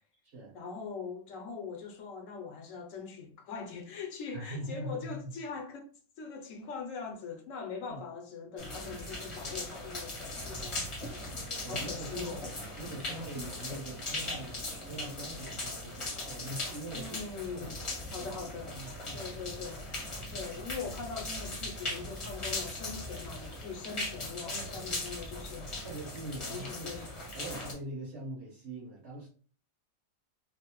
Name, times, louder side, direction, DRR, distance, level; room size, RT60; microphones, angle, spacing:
voice 1, 0.5-5.9 6.2-11.4 11.7-12.4 16.9-17.8 18.1-18.7 19.1-19.9 20.3-25.8 26.4-27.1, left 5 dB, 75° left, 0.9 m, -42 dB
voice 2, 4.3-5.4 7.9-8.0 10.4-10.8 11.3-12.4 12.8-17.2 17.5-19.6 20.4-20.5 24.4-24.9 25.8-26.9 27.3-29.3, right 1 dB, 55° right, 1.5 m, -43 dB
sound 1, 8.6-27.7, left 2 dB, 30° left, 0.7 m, -39 dB
3.1 x 2.0 x 2.9 m
omnidirectional pair, 1.4 m